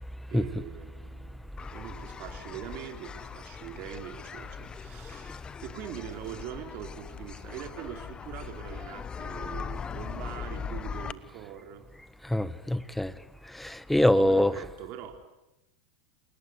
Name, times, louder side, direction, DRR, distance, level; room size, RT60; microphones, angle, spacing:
voice 1, 0.3-11.9 14.2-15.3, right 11 dB, 50° right, 5 dB, 4.4 m, -42 dB
sound 1, 1.6-11.1, left 6 dB, 20° left, 1.1 m, -40 dB
voice 2, 12.2-13.1 13.5-14.5, left 1 dB, 5° left, 16 dB, 1.1 m, -24 dB
29.5 x 18.5 x 9.7 m, 0.95 s
hypercardioid pair, 110°, 4 cm